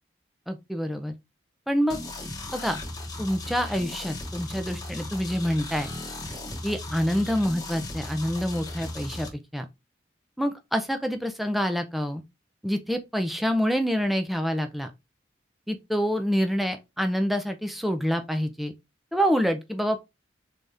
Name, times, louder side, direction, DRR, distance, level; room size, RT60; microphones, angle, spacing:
voice 1, 0.5-1.1 1.7-2.0 2.5-2.8 3.2-5.9 6.6-9.3 9.5-9.6 10.4-12.2 12.6-14.9 15.7-18.7 19.1-20.0, equal, ahead, 0.6 m, -26 dB
sound 1, 1.9-9.3, left 2 dB, 20° left, 1.1 m, -36 dB
4.0 x 3.5 x 3.4 m
head